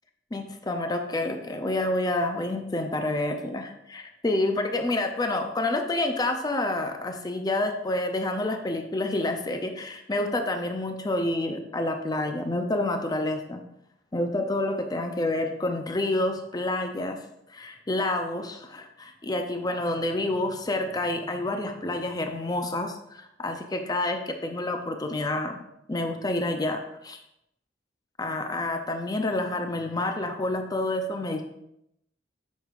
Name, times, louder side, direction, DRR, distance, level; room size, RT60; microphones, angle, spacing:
voice 1, 0.3-13.6 14.1-17.2 17.5-25.6 25.9-27.2 28.2-31.4, left 2 dB, 20° left, 5 dB, 0.5 m, -28 dB
8.0 x 6.3 x 2.5 m, 0.79 s
head